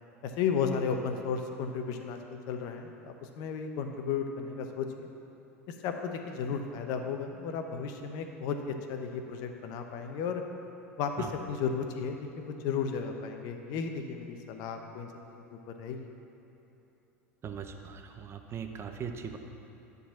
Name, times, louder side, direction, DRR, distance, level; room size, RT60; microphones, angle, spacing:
voice 1, 0.2-5.1 5.7-10.4 11.0-15.4 15.8-16.1, left 6 dB, 55° left, 5 dB, 0.8 m, -34 dB
voice 2, 17.4-19.4, right 7 dB, 35° right, 5 dB, 0.8 m, -39 dB
10.0 x 4.0 x 7.2 m, 2.9 s
hypercardioid pair, 80°, 8 cm